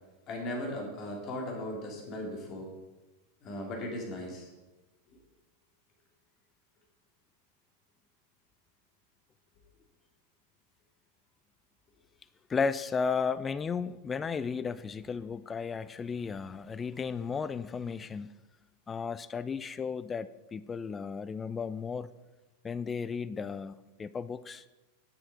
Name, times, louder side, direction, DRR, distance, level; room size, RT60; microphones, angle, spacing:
voice 1, 0.3-2.7 3.4-4.5, left 1 dB, 35° left, 0 dB, 2.7 m, -37 dB
voice 2, 12.5-18.3 18.9-22.1 22.6-24.6, left 5 dB, 20° left, 15 dB, 0.4 m, -34 dB
9.8 x 8.4 x 5.0 m, 1.1 s
figure-of-eight pair, 90°, 0 cm